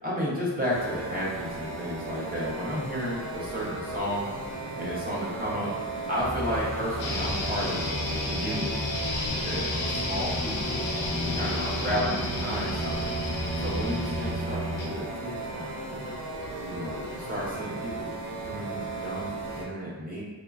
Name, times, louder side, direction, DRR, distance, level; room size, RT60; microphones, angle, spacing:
voice 1, 0.0-5.7 6.1-8.9 9.2-10.9 11.2-13.2 13.6-16.1 16.7-18.1 18.4-20.2, equal, 20° right, -6 dB, 0.6 m, -33 dB
sound 1, 0.7-19.6, right 2 dB, 80° right, 0.7 m, -36 dB
sound 2, 6.2-14.3, equal, 25° left, 0.6 m, -36 dB
sound 3, 7.0-15.0, left 2 dB, 80° left, 0.6 m, -32 dB
2.9 x 2.2 x 2.3 m, 1.2 s
wide cardioid pair, 130°, 46 cm